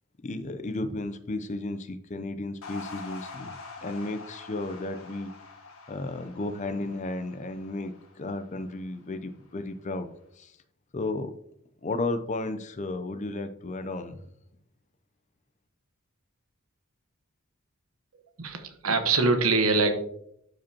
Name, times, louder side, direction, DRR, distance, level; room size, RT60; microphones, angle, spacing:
voice 1, 0.2-5.3 5.9-10.1 10.4-10.5 10.9-11.3 11.8-14.2, left 2 dB, 35° left, 10 dB, 0.5 m, -33 dB
sound 1, 2.6-9.1, left 4 dB, 80° left, 1.5 m, -45 dB
voice 2, 18.1-19.9, right 3 dB, 80° right, 7 dB, 1.1 m, -24 dB
11.5 x 5.1 x 2.8 m, 0.73 s
head